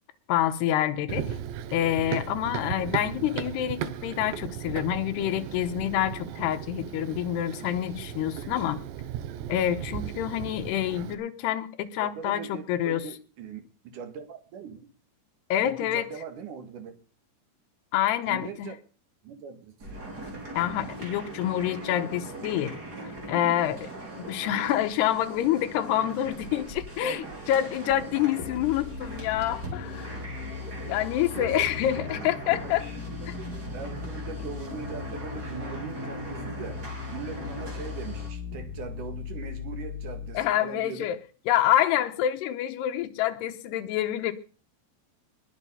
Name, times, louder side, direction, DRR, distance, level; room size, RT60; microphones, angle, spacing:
voice 1, 0.3-1.4 1.7-8.8 9.5-13.0 15.5-16.1 17.9-18.7 20.5-22.8 23.3-23.9 24.3-30.2 30.9-32.9 33.3-33.4 40.3-41.2 41.5-44.3, left 12 dB, 80° left, 3.0 m, -27 dB
Run, 1.1-11.2, right 10 dB, 90° right, 3.2 m, -36 dB
voice 2, 12.0-14.9 15.6-16.9 18.3-18.8 19.2-20.0 27.0-27.3 31.3-31.9 32.2-32.8 33.1-36.8 37.1-41.1, right 6 dB, 55° right, 2.9 m, -41 dB
sound 1, 19.8-38.3, right 2 dB, 25° right, 4.3 m, -40 dB
sound 2, 28.4-40.4, left 7 dB, 55° left, 3.9 m, -39 dB
21.5 x 7.3 x 5.6 m
omnidirectional pair, 5.0 m